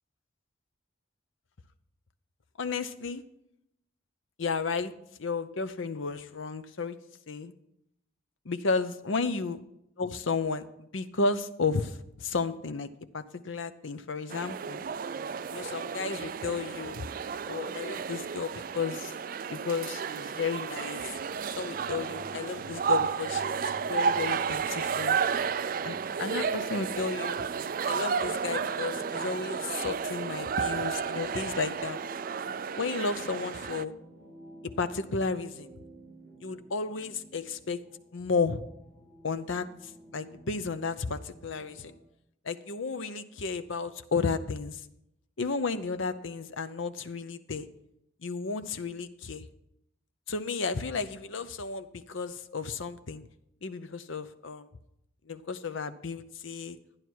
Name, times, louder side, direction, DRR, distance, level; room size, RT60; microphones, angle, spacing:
voice 1, 2.6-3.2 4.4-4.9 5.2-7.0 7.3-7.5 8.4-9.6 10.0-12.9 13.1-14.8 15.5-17.0 17.5-19.1 19.5-21.1 21.6-25.2 25.8-27.4 27.8-32.0 32.8-33.9 34.6-35.7 36.4-37.8 38.1-38.6 39.2-39.7 40.1-41.9 42.4-44.8 45.4-47.7 48.2-49.5 50.3-53.3 53.6-54.7 55.3-56.8, left 4 dB, 75° left, 11 dB, 0.7 m, -33 dB
sound 1, 14.3-33.8, right 6 dB, 45° right, 0.3 m, -32 dB
sound 2, 21.5-28.6 29.0-29.3 29.6-29.7, left 1 dB, 30° right, 4.1 m, -54 dB
sound 3, 23.2-42.0, right 1 dB, 10° left, 4.2 m, -51 dB
11.5 x 10.5 x 4.6 m, 0.79 s
head